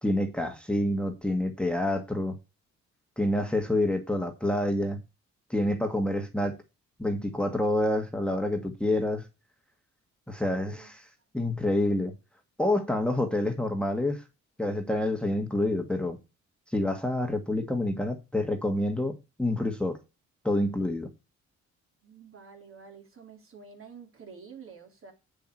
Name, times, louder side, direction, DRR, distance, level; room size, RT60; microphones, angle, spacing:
voice 1, 0.0-2.4 3.2-5.0 5.5-6.6 7.0-9.3 10.3-11.0 11.3-12.1 12.6-14.2 14.6-16.2 16.7-20.0 20.4-21.1, left 1 dB, 5° left, 1.8 m, -27 dB
voice 2, 22.0-25.1, right 6 dB, 45° right, 3.5 m, -48 dB
8.3 x 7.0 x 4.6 m
cardioid pair, 90°, 30 cm